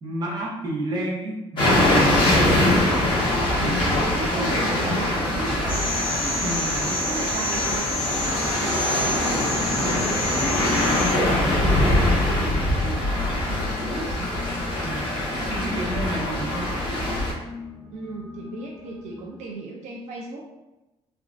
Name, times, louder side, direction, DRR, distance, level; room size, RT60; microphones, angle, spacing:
voice 1, 0.0-2.8 3.5-3.9 4.2-4.5 6.4-6.8 11.3-11.5 14.8-15.1 15.5-16.7, right 1 dB, 35° right, -4 dB, 0.8 m, -31 dB
sound 1, 1.6-17.3, left 1 dB, 40° left, 1.1 m, -23 dB
sound 2, 1.9-19.6, left 3 dB, 15° right, 0.3 m, -40 dB
voice 2, 3.5-6.6 7.0-10.8 11.2-14.1 17.9-20.4, right 2 dB, 85° right, -1 dB, 0.5 m, -36 dB
sound 3, 5.7-11.1, left 1 dB, 15° left, 1.0 m, -29 dB
3.4 x 2.4 x 2.4 m, 0.99 s
cardioid pair, 140°, 12 cm